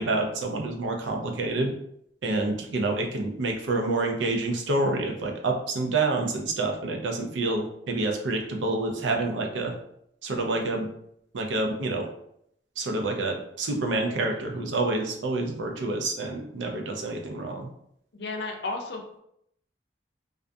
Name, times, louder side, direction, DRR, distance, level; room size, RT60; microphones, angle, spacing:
voice 1, 0.0-1.7 2.2-9.7 10.2-10.9 11.3-12.1 12.8-17.7, right 2 dB, 85° right, 2 dB, 0.5 m, -28 dB
voice 2, 18.1-19.2, left 3 dB, 65° left, 3 dB, 0.5 m, -33 dB
2.4 x 2.2 x 2.5 m, 0.73 s
head